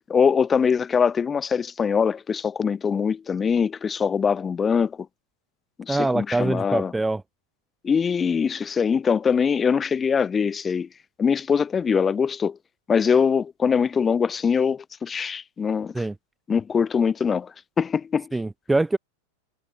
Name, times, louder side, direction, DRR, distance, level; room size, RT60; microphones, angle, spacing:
voice 1, 0.0-5.0 5.8-6.9 7.8-10.9 11.2-12.6 12.9-15.9 16.5-18.3, left 6 dB, 20° left, 5.6 m, -23 dB
voice 2, 5.9-7.2 15.9-16.1 18.3-19.0, right 2 dB, 10° right, 3.1 m, -24 dB
hypercardioid pair, 95°, 0 cm